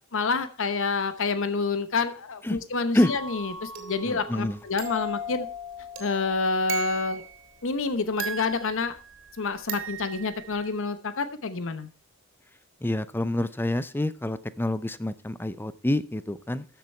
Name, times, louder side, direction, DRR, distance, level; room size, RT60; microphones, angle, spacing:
voice 1, 0.1-5.5 6.0-7.2 7.6-8.9 9.4-11.9, left 4 dB, 65° left, 11 dB, 0.9 m, -28 dB
sound 1, 3.0-7.4 8.2-9.3 9.7-10.7, right 2 dB, 60° right, 2.8 m, -37 dB
voice 2, 4.1-4.6 12.8-16.7, left 1 dB, 10° left, 15 dB, 0.6 m, -27 dB
13.5 x 6.8 x 4.4 m, 0.39 s
head